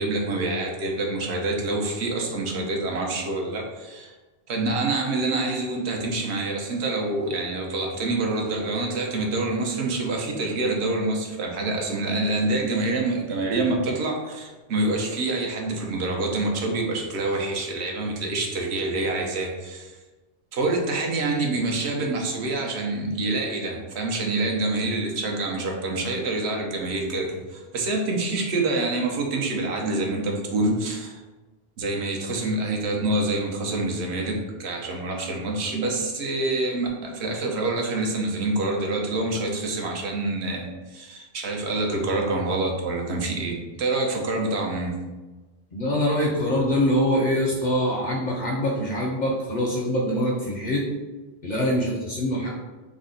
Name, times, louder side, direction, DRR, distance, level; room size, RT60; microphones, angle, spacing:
voice 1, 0.0-4.1 4.5-20.0 20.5-31.2 31.8-45.0, right 2 dB, 70° right, 1 dB, 0.9 m, -26 dB
voice 2, 45.7-50.9 51.4-52.5, equal, 55° left, -2 dB, 0.5 m, -24 dB
3.4 x 2.1 x 3.7 m, 1.2 s
omnidirectional pair, 1.2 m